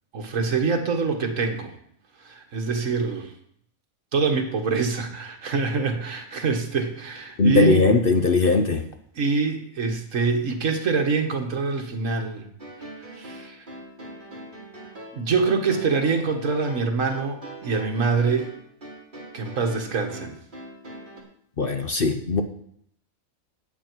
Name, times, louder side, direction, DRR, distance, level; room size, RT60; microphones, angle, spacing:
voice 1, 0.1-1.7 2.2-3.3 4.1-7.9 9.2-12.4 13.1-13.6 15.1-18.5 19.3-20.4, right 4 dB, 65° right, 4 dB, 1.8 m, -25 dB
voice 2, 7.4-8.8 21.6-22.4, left 3 dB, 45° left, 6 dB, 0.9 m, -20 dB
sound 1, 12.6-21.2, right 1 dB, 35° right, 2.6 m, -41 dB
13.5 x 8.5 x 4.6 m, 0.68 s
omnidirectional pair, 1.5 m